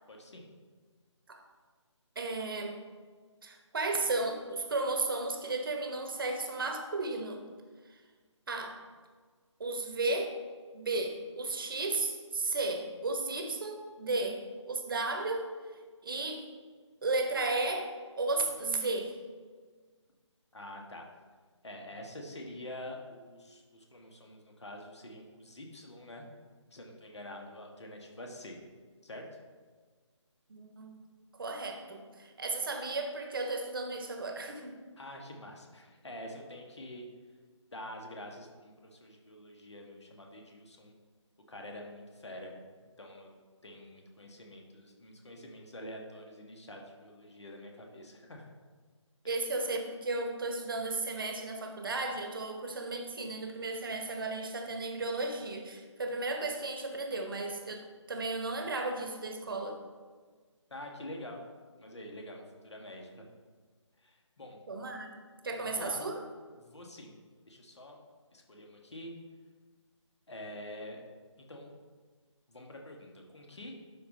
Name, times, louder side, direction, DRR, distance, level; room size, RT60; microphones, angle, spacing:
voice 1, 0.1-0.5 20.5-21.0 21.6-26.2 26.7-28.6 29.0-29.2 35.0-37.0 37.7-40.9 41.5-42.5 43.0-43.3 43.6-48.5 60.7-61.4 61.8-63.2 64.0-64.6 65.6-66.1 66.5-67.2 67.5-68.0 68.3-69.1 70.3-71.0 71.5-71.7 72.5-73.7, left 1 dB, 60° left, 1 dB, 1.6 m, -46 dB
voice 2, 2.1-2.8 3.4-7.4 8.5-8.8 9.6-10.4 10.7-15.5 16.0-16.4 17.0-19.2 30.5-31.0 31.4-34.8 49.3-59.8 64.7-65.2 65.4-66.1, right 2 dB, 45° right, 4 dB, 1.1 m, -34 dB
11.5 x 4.1 x 3.9 m, 1.5 s
figure-of-eight pair, 150°, 16 cm